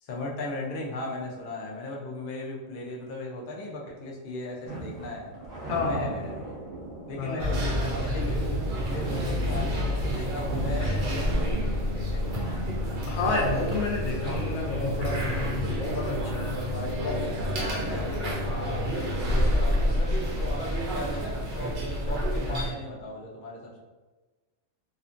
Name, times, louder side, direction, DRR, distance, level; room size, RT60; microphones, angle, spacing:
voice 1, 0.0-5.3 5.8-6.6 7.1-8.5 8.8-12.5 16.7-23.8, left 1 dB, 60° left, -2 dB, 0.5 m, -37 dB
sound 1, 4.7-13.2, right 2 dB, 15° right, 0.8 m, -39 dB
voice 2, 5.7-6.1 7.2-7.5 13.1-16.7 17.0-17.3, left 3 dB, 80° left, 0 dB, 1.0 m, -30 dB
sound 2, 7.4-22.7, equal, 65° right, 0.5 m, -28 dB
2.5 x 2.4 x 2.5 m, 1.2 s
omnidirectional pair, 1.4 m